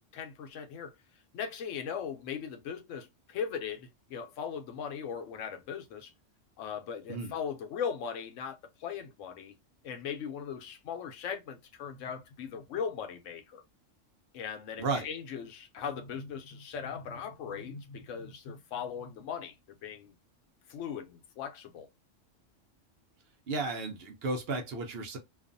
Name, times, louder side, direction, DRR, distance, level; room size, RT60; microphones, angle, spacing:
voice 1, 0.1-0.9 1.3-6.1 6.6-9.5 9.8-13.6 14.3-20.1 20.7-21.9, left 7 dB, 85° left, 1.0 m, -39 dB
voice 2, 23.5-25.2, right 3 dB, 60° right, 0.8 m, -33 dB
2.5 x 2.3 x 2.5 m
omnidirectional pair, 1.3 m